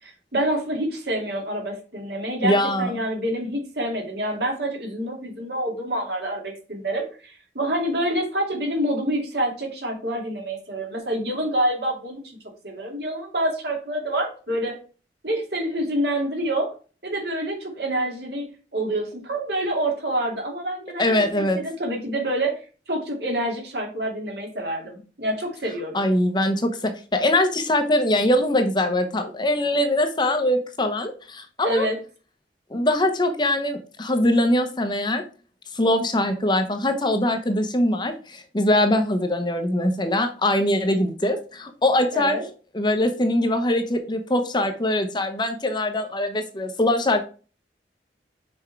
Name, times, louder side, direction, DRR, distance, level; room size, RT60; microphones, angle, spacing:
voice 1, 0.0-12.4 12.6-14.8 15.2-16.7 17.0-22.6 22.9-26.0 31.6-32.0 42.1-42.4, right 1 dB, 60° right, 1 dB, 2.3 m, -27 dB
voice 2, 2.4-3.0 21.0-21.6 25.9-31.9 32.7-35.2 35.7-42.4 42.7-47.2, left 1 dB, 25° left, 6 dB, 0.8 m, -22 dB
5.9 x 4.4 x 4.5 m, 0.36 s
head